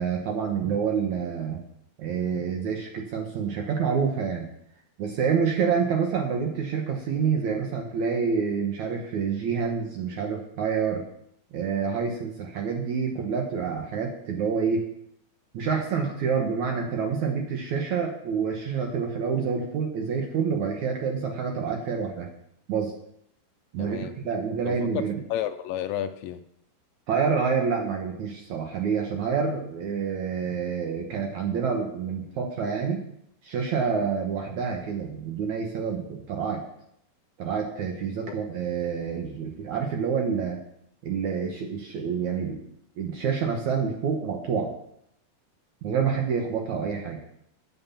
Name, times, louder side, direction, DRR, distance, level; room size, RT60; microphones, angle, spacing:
voice 1, 0.0-1.6 2.0-4.5 5.0-11.0 11.5-14.8 15.5-22.3 22.7-22.9 23.7-25.2 27.1-33.0 33.4-36.6 37.4-40.6 41.0-42.6 43.0-44.7 45.8-47.2, right 6 dB, 65° right, 2 dB, 2.0 m, -27 dB
voice 2, 23.8-24.1 24.7-26.4, left 11 dB, 80° left, 9 dB, 2.1 m, -32 dB
9.9 x 7.8 x 7.2 m, 0.75 s
omnidirectional pair, 4.6 m